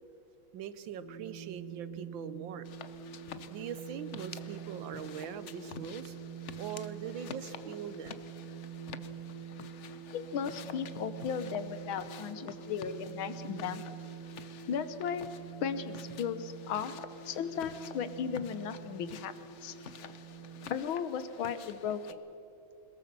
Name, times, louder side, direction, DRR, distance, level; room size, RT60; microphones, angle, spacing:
voice 1, 0.5-2.7 3.5-6.1 6.6-8.2, right 8 dB, 75° right, 14 dB, 1.5 m, -42 dB
sound 1, 1.0-20.7, right 7 dB, 55° right, 1.7 m, -46 dB
sound 2, 2.6-22.1, left 7 dB, 60° left, 0.7 m, -50 dB
voice 2, 10.1-13.8 14.7-15.3 15.6-16.9 17.2-19.3 19.6-19.7 20.7-22.2, left 7 dB, 80° left, 12 dB, 1.8 m, -36 dB
22.0 x 20.5 x 6.8 m, 2.8 s
omnidirectional pair, 2.2 m